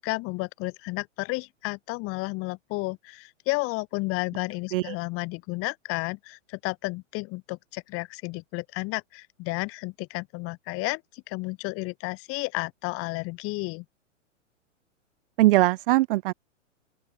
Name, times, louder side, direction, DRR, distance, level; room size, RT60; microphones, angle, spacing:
voice 1, 0.0-13.8, left 25 dB, 35° left, 7.8 m, -32 dB
voice 2, 15.4-16.3, right 18 dB, 45° right, 1.6 m, -21 dB
open air
figure-of-eight pair, 115°, 37 cm